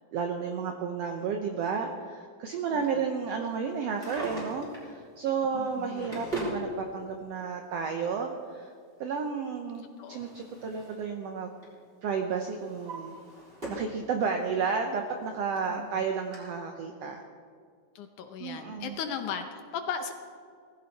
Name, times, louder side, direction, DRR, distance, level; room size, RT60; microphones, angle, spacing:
voice 1, 0.1-8.7 9.0-11.5 12.0-13.2 13.7-17.2 18.4-19.0, right 6 dB, 75° right, 4 dB, 1.5 m, -32 dB
Drawer open or close, 3.8-4.9 5.6-6.6 7.7-7.8 9.6-11.1 11.4-11.8 12.3-14.0 14.4-14.5 15.2-15.3 15.5-15.6 16.3-16.4, right 2 dB, 15° right, 3.8 m, -39 dB
voice 2, 5.5-6.1 10.0-10.3 15.7-16.0 18.0-20.1, left 7 dB, 75° left, 6 dB, 2.1 m, -37 dB
18.5 x 15.0 x 4.2 m, 2.2 s
omnidirectional pair, 4.0 m